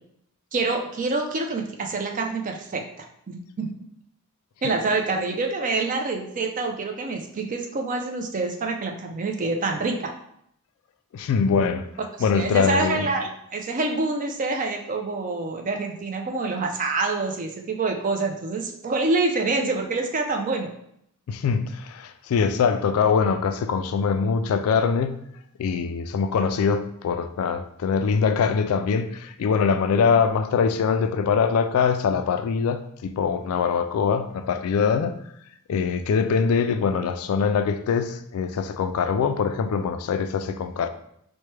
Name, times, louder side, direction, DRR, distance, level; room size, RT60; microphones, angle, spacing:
voice 1, 0.5-2.9 3.3-3.8 4.6-10.1 12.3-20.7, right 3 dB, 35° right, 0.5 m, -26 dB
voice 2, 11.1-11.8 12.2-13.1 21.3-25.2 25.6-35.1 35.7-40.9, left 6 dB, 65° left, 0.3 m, -23 dB
4.4 x 2.2 x 3.2 m
head